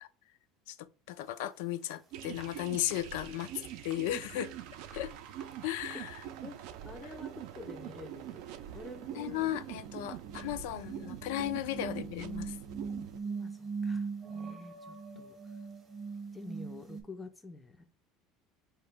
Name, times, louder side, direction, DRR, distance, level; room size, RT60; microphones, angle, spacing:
voice 1, 0.7-3.5 3.8-4.5 4.9-5.1 5.6-6.2 7.0-7.1 9.2-12.6, left 13 dB, 85° left, 0.3 m, -35 dB
sound 1, 1.4-1.5 1.9-2.0 2.4-2.5 2.9-3.0 3.4-3.5 3.9-4.0 4.3-4.6 4.9-5.0 5.4-5.5 5.9-6.0 6.2-6.3 8.3-8.4 8.7-17.0, right 5 dB, 20° right, 0.8 m, -41 dB
sound 2, 2.1-13.2, right 10 dB, 60° right, 0.4 m, -44 dB
voice 2, 6.8-8.4 8.7-9.5 11.6-11.7 13.2-14.1 14.3-15.4 16.3-17.9, left 2 dB, 10° left, 0.4 m, -48 dB
4.7 x 2.9 x 3.3 m
cardioid pair, 170°, 0 cm